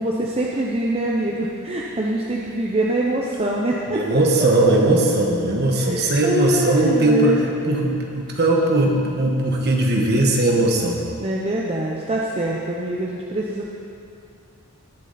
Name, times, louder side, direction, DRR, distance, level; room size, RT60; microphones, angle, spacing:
voice 1, 0.0-4.0 4.6-4.7 5.8-7.9 11.2-13.7, right 1 dB, 25° right, -2 dB, 0.8 m, -24 dB
voice 2, 3.9-7.4 7.7-11.0, right 2 dB, 50° right, 0 dB, 1.6 m, -19 dB
19.0 x 7.0 x 4.3 m, 2.7 s
head